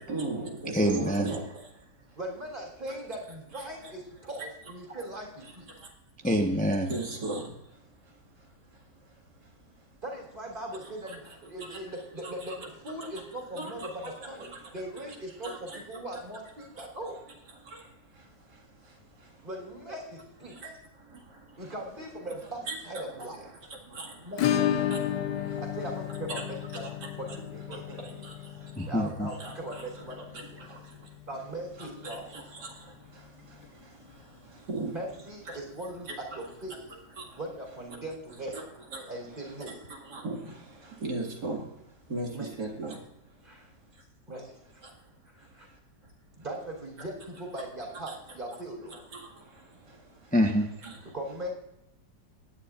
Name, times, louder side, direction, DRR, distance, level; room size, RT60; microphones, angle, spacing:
voice 1, 0.1-1.4 3.5-3.6 6.9-7.5 11.1-11.2 12.2-12.6 13.6-13.7 14.0-14.1 15.4-15.8 20.6-20.7 22.7-23.0 23.9-24.1 24.9-25.0 26.3-26.4 27.3-27.4 28.0-28.3 29.4-29.8 31.8-32.4 34.7-34.9 35.5-35.6 38.5-38.6 38.9-39.0 40.1-40.4 41.0-41.6 42.1-43.0 48.1-48.2 49.1-49.2 50.8-50.9, right 3 dB, 70° right, 0 dB, 2.5 m, -35 dB
voice 2, 0.7-1.3 6.2-6.9 28.8-29.3 50.3-50.7, equal, 10° left, 2 dB, 0.5 m, -25 dB
voice 3, 2.2-5.7 10.0-17.2 19.4-20.6 21.6-23.5 24.2-24.6 25.6-26.9 27.2-28.0 28.5-30.5 31.3-32.4 34.9-36.8 37.4-38.7 39.1-39.8 42.3-42.5 43.4-43.7 44.3-44.8 45.3-45.7 46.4-48.9 51.0-51.5, right 1 dB, 30° right, 0 dB, 3.4 m, -40 dB
Acoustic guitar / Strum, 24.4-33.0 33.2-33.3 33.6-33.7 34.1-34.2 36.2-36.3 37.5-37.6, left 10 dB, 80° left, 1.5 m, -33 dB
18.5 x 10.0 x 2.4 m, 0.84 s
omnidirectional pair, 1.9 m